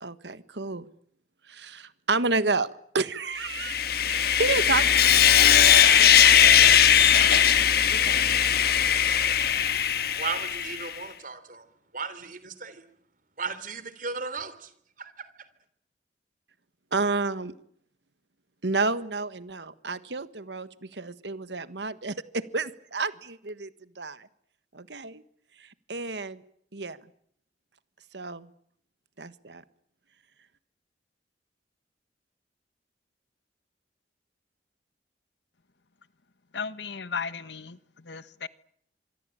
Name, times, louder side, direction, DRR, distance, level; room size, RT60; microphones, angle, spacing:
voice 1, 0.0-0.8 1.5-3.8 4.0-7.5 7.9-8.4 16.9-17.5 18.6-23.7 23.9-24.3 24.7-25.2 25.6-26.4 26.7-27.0 28.1-28.5 29.2-29.6, right 3 dB, 80° right, 1.5 m, -31 dB
Sawing, 3.5-10.9, left 9 dB, 60° left, 1.5 m, -19 dB
voice 2, 10.2-11.7 11.9-12.8 13.4-14.7 15.0-15.3, right 5 dB, 50° right, 3.3 m, -35 dB
voice 3, 36.5-38.5, left 5 dB, 80° left, 1.3 m, -35 dB
26.0 x 22.5 x 8.9 m
head